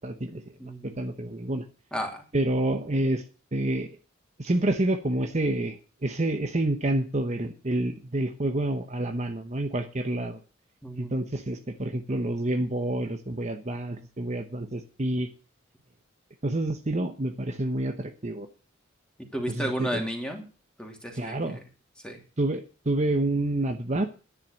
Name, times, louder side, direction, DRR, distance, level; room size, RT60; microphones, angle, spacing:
voice 1, 0.0-0.4 0.8-1.6 2.3-3.2 3.5-3.9 4.4-10.4 11.0-15.3 16.4-18.5 19.5-20.1 21.1-21.6 22.4-24.1, right 1 dB, 35° right, 6 dB, 1.0 m, -28 dB
voice 2, 0.6-1.0 1.9-2.2 10.8-11.1 19.3-20.4 20.8-21.3 22.0-22.2, equal, 5° left, 2 dB, 3.0 m, -32 dB
10.5 x 10.0 x 6.5 m, 0.36 s
head